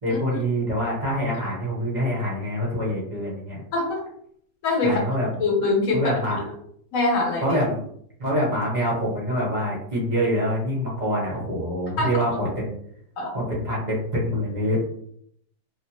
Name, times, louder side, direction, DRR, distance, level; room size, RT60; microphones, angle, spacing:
voice 1, 0.0-3.6 4.8-5.4 5.9-6.4 7.4-7.8 8.2-12.7 13.3-14.8, equal, 35° right, -6 dB, 0.8 m, -25 dB
voice 2, 3.7-4.0 4.6-5.0 5.4-6.0 6.3-6.4 6.9-7.4 12.0-12.2 13.2-13.3, left 3 dB, 55° left, 0 dB, 1.2 m, -23 dB
2.5 x 2.4 x 2.8 m, 0.67 s
omnidirectional pair, 1.8 m